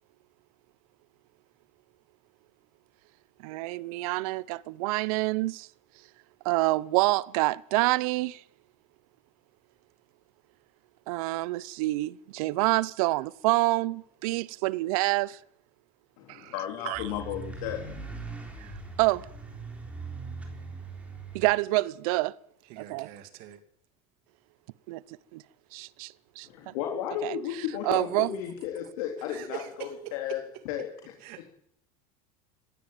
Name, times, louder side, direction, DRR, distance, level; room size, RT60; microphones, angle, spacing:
voice 1, 3.4-5.7 6.4-8.4 11.1-15.4 16.3-16.5 16.8-17.0 18.6-18.7 19.0-19.3 21.3-22.4 22.8-23.1 24.9-25.0 25.3-25.4 25.7-26.7 27.2-27.3 27.8-28.3, right 20 dB, 75° right, 0.8 m, -27 dB
voice 2, 16.2-17.8 26.4-30.9, left 10 dB, 70° left, 3.8 m, -34 dB
sound 1, 16.9-21.5, right 3 dB, 5° right, 3.9 m, -40 dB
voice 3, 22.7-23.6 29.3-30.2 31.2-31.5, right 11 dB, 55° right, 2.7 m, -43 dB
20.5 x 16.0 x 9.1 m
cardioid pair, 180°, 18 cm